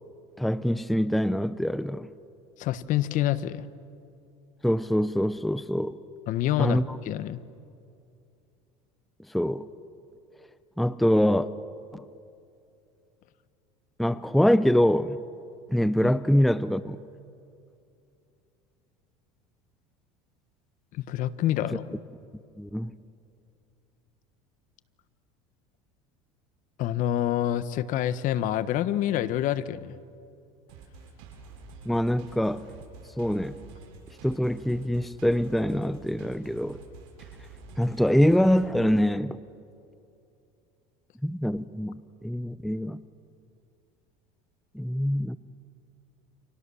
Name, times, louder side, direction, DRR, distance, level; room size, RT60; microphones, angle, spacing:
voice 1, 0.4-2.1 4.6-6.0 6.6-7.0 9.3-9.7 10.8-11.5 11.9-12.1 14.0-15.2 15.7-17.0 21.7-21.8 22.6-23.0 31.9-32.7 33.2-33.6 34.2-36.8 37.8-39.4 41.2-43.0 44.7-45.4, equal, ahead, 0.6 m, -24 dB
voice 2, 2.6-3.7 6.3-7.4 20.9-21.8 26.8-30.0, left 12 dB, 55° left, 1.2 m, -27 dB
sound 1, 30.7-38.7, right 4 dB, 75° right, 7.5 m, -48 dB
30.0 x 28.0 x 7.1 m
supercardioid pair, 115°, 16 cm